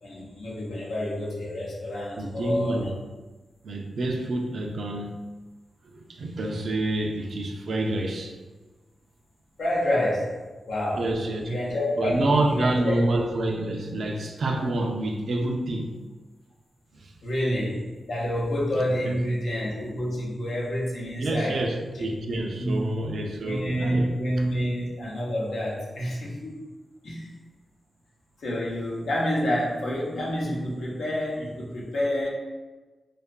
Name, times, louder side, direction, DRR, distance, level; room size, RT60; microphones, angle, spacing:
voice 1, 0.0-2.9 9.6-10.4 10.7-11.0 11.4-13.0 17.2-21.6 22.0-22.1 22.6-22.9 23.4-26.6 27.0-27.3 28.4-32.3, equal, 80° left, -5 dB, 0.6 m, -28 dB
voice 2, 2.2-2.9 3.6-5.2 5.8-8.3 11.0-11.5 12.0-15.9 16.9-17.1 18.8-19.1 21.2-24.1, right 2 dB, 70° right, 3 dB, 0.3 m, -28 dB
2.6 x 2.3 x 2.2 m, 1.2 s
cardioid pair, 60°, 0 cm